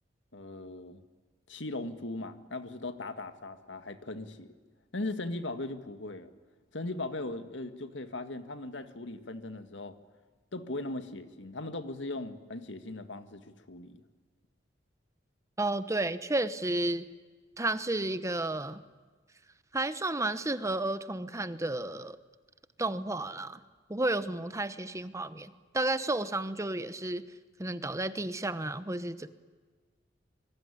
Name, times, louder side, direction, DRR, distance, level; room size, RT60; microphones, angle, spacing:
voice 1, 0.3-1.0 1.5-4.5 4.9-6.3 6.7-9.9 10.5-14.0, left 2 dB, 85° left, 1.9 m, -38 dB
voice 2, 15.6-17.1 17.6-18.8 19.7-22.2 22.8-23.6 23.9-27.2 27.6-29.3, right 2 dB, 15° right, 1.0 m, -32 dB
26.5 x 22.0 x 10.0 m
head